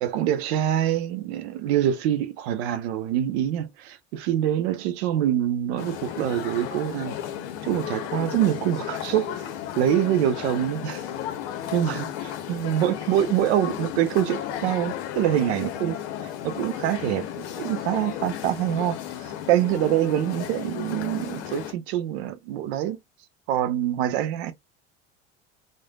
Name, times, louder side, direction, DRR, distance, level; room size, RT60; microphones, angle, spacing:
voice 1, 0.0-7.2 7.6-9.4 9.8-11.0 11.7-16.0 16.4-17.2 17.6-19.0 19.5-23.0 23.5-24.5, right 11 dB, 65° right, 0.6 m, -25 dB
sound 1, 5.8-21.7, left 10 dB, 60° left, 0.7 m, -34 dB
3.2 x 2.2 x 2.3 m
hypercardioid pair, 65°, 35 cm